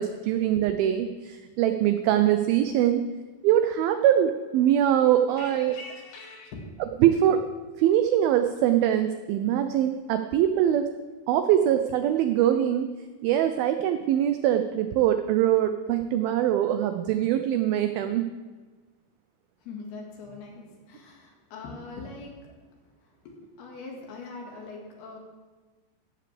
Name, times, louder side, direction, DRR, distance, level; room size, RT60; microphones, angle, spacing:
voice 1, 0.0-3.1 3.4-5.7 7.0-7.5 7.8-10.9 11.3-12.9 13.2-18.2, right 11 dB, 90° right, 8 dB, 2.1 m, -23 dB
voice 2, 5.4-6.6 19.6-22.5 23.0-25.2, left 3 dB, 70° left, 0 dB, 3.6 m, -42 dB
15.5 x 13.5 x 3.4 m, 1.3 s
omnidirectional pair, 4.9 m